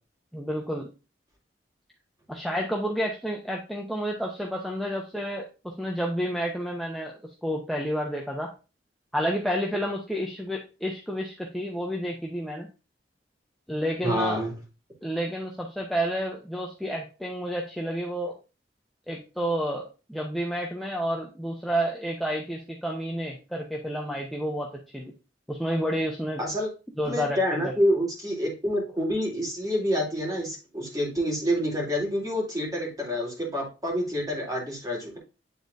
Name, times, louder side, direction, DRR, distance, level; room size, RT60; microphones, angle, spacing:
voice 1, 0.3-0.9 2.3-7.1 7.4-8.5 9.1-12.7 13.7-14.4 15.0-18.4 19.1-25.1 25.5-26.4 27.0-27.7, equal, ahead, -1 dB, 0.8 m, -30 dB
voice 2, 14.0-14.5 26.4-26.7 27.0-35.2, equal, 20° right, -2 dB, 2.5 m, -27 dB
9.3 x 3.9 x 2.6 m, 0.31 s
head